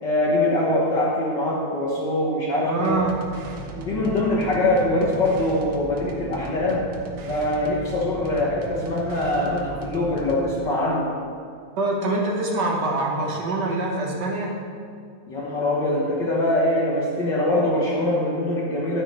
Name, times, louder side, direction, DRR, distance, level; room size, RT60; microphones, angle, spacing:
voice 1, 0.0-3.0 3.8-6.9 7.3-11.1 15.3-19.0, left 1 dB, 55° left, -4 dB, 1.2 m, -23 dB
voice 2, 2.6-3.2 11.8-14.6, right 2 dB, 65° right, 0 dB, 1.0 m, -24 dB
sound 1, 2.8-10.5, right 3 dB, 85° right, 1.1 m, -37 dB
9.4 x 9.0 x 4.3 m, 2.3 s
omnidirectional pair, 3.4 m